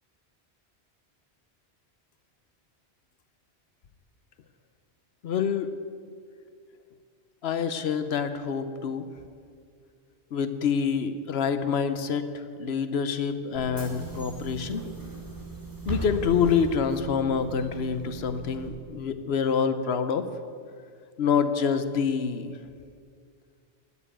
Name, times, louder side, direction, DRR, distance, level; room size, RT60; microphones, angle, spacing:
voice 1, 5.2-5.7 7.4-9.1 10.3-14.9 15.9-20.2 21.2-22.6, left 6 dB, 70° left, 10 dB, 1.0 m, -27 dB
Bus / Engine, 13.5-18.7, right 2 dB, 20° right, 2.1 m, -38 dB
12.5 x 7.2 x 8.9 m, 2.2 s
omnidirectional pair, 1.1 m